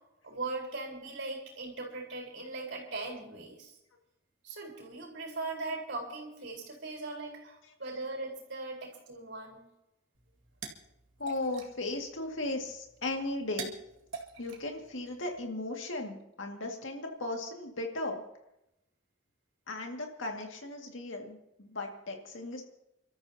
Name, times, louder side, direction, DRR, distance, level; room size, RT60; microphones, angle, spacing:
voice 1, 0.2-3.8 4.4-9.7, right 3 dB, 60° right, 0 dB, 4.6 m, -39 dB
sound 1, 10.1-15.5, right 5 dB, 75° right, 2.1 m, -47 dB
voice 2, 11.2-13.7 14.4-18.2 19.7-22.6, left 2 dB, 75° left, 2 dB, 2.2 m, -36 dB
30.0 x 13.0 x 2.9 m, 0.86 s
head